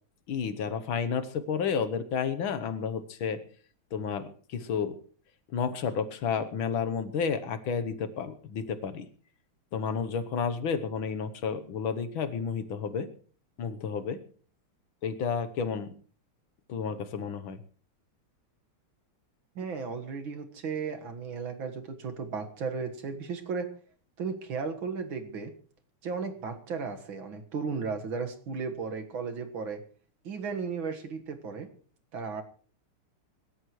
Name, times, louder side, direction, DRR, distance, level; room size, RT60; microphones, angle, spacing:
voice 1, 0.3-3.4 3.9-5.0 5.5-9.1 9.7-13.1 13.6-14.2 15.0-15.9 16.7-17.6, left 6 dB, 70° left, 10 dB, 1.8 m, -31 dB
voice 2, 19.6-23.7 24.2-25.5 26.0-29.8 30.2-31.7 32.1-32.4, right 5 dB, 65° right, 6 dB, 2.3 m, -35 dB
25.0 x 13.0 x 3.1 m, 0.42 s
omnidirectional pair, 2.4 m